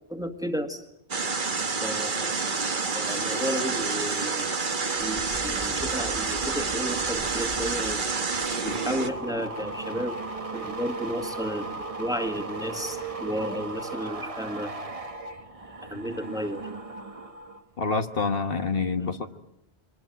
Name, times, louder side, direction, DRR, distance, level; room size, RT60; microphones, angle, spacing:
voice 1, 0.1-0.9 1.8-2.5 2.9-4.4 5.0-8.1 8.6-10.1 10.5-14.7 15.9-16.7, equal, 5° right, 6 dB, 2.0 m, -32 dB
sound 1, 1.1-9.1, right 4 dB, 50° right, 1.5 m, -28 dB
sound 2, 5.0-17.6 17.9-18.3, right 3 dB, 35° right, 1.3 m, -38 dB
voice 2, 17.8-19.4, left 4 dB, 60° left, 7 dB, 1.5 m, -27 dB
25.0 x 19.5 x 9.2 m, 0.79 s
omnidirectional pair, 1.1 m